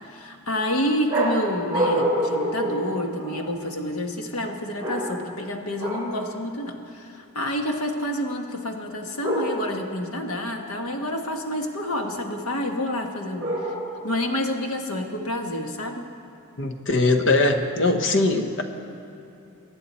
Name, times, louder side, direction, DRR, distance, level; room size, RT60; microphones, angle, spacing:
voice 1, 0.1-13.7 14.0-16.1, left 1 dB, 80° left, 4 dB, 1.3 m, -28 dB
sound 1, 1.1-3.6 4.8-5.4 5.8-6.3 9.2-9.9 13.4-14.1, right 1 dB, 10° right, 3.0 m, -27 dB
voice 2, 16.6-18.6, left 2 dB, 55° left, 6 dB, 1.0 m, -21 dB
23.5 x 9.9 x 4.2 m, 2.8 s
head